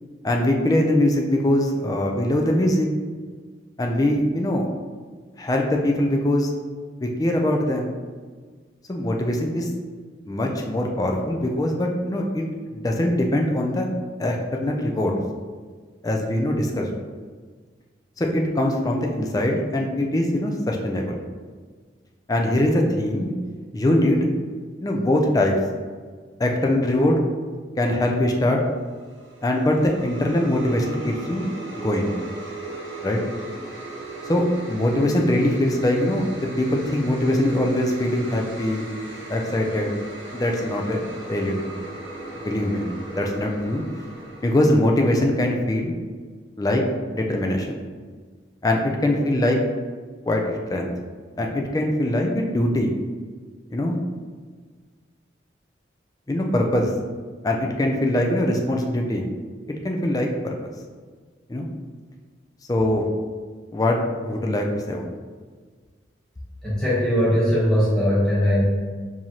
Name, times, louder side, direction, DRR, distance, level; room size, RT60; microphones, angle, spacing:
voice 1, 0.2-2.9 3.8-4.7 5.4-6.5 7.0-7.9 8.9-9.7 10.3-12.5 12.7-13.8 14.2-15.1 16.0-16.9 18.2-21.2 22.3-23.3 23.7-24.3 24.8-25.6 26.4-27.2 27.8-28.6 29.4-31.4 31.7-32.1 33.0-33.2 34.3-36.3 36.6-38.9 39.3-39.9 40.3-41.7 42.3-42.8 43.1-43.8 44.4-45.9 46.6-46.8 47.1-47.8 48.6-49.6 50.3-50.9 51.4-52.9 53.7-54.0 56.3-56.9 57.4-59.2 59.8-60.6 61.5-61.7 62.7-63.1 63.7-64.0 64.2-65.1, left 1 dB, 20° left, 1 dB, 0.3 m, -22 dB
sound 1, 28.8-45.3, right 2 dB, 65° right, 0.8 m, -38 dB
voice 2, 66.6-68.6, equal, 5° left, -8 dB, 1.0 m, -20 dB
4.6 x 2.7 x 2.9 m, 1.5 s
head